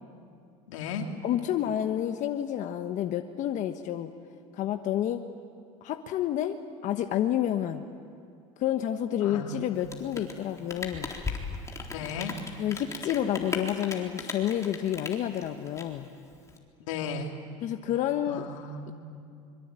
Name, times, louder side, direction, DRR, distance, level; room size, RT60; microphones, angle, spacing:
voice 1, 0.7-1.1 9.2-9.8 11.9-12.3 16.9-17.3 18.2-18.9, left 5 dB, 90° left, 3 dB, 3.0 m, -35 dB
voice 2, 1.2-4.1 4.5-5.2 5.8-7.9 8.6-11.1 12.6-16.1 17.6-18.5, left 11 dB, 50° left, 6 dB, 1.3 m, -29 dB
Rain, 9.7-16.6, left 4 dB, 20° left, 3.8 m, -37 dB
24.5 x 24.0 x 9.1 m, 2.4 s
supercardioid pair, 100°, 16 cm